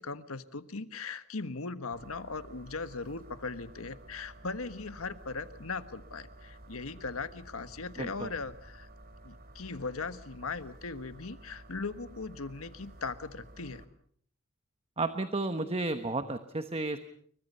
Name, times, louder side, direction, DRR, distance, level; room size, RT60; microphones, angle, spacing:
voice 1, 0.0-8.9 9.2-13.8, left 4 dB, 85° left, 11 dB, 1.5 m, -39 dB
sound 1, 1.9-13.9, right 1 dB, 45° right, 2.7 m, -52 dB
voice 2, 8.0-8.3 15.0-17.0, right 2 dB, 30° right, 9 dB, 1.1 m, -32 dB
29.5 x 23.0 x 5.5 m, 0.62 s
head